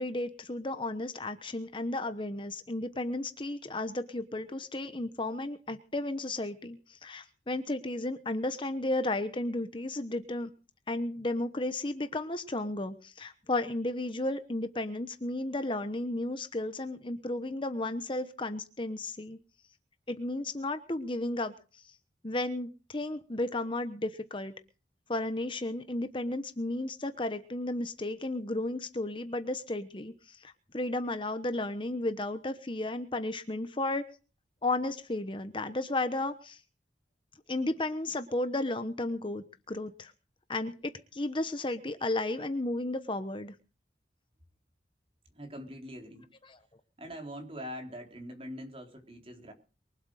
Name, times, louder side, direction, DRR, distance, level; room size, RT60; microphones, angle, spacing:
voice 1, 0.0-10.5 10.9-19.4 20.1-21.9 22.2-24.5 25.1-34.1 34.6-36.6 37.5-40.1 40.5-43.5, left 2 dB, 30° left, 10 dB, 1.0 m, -33 dB
voice 2, 45.3-46.3 47.0-49.5, equal, 30° right, 3 dB, 4.0 m, -43 dB
23.5 x 8.1 x 6.5 m, 0.37 s
head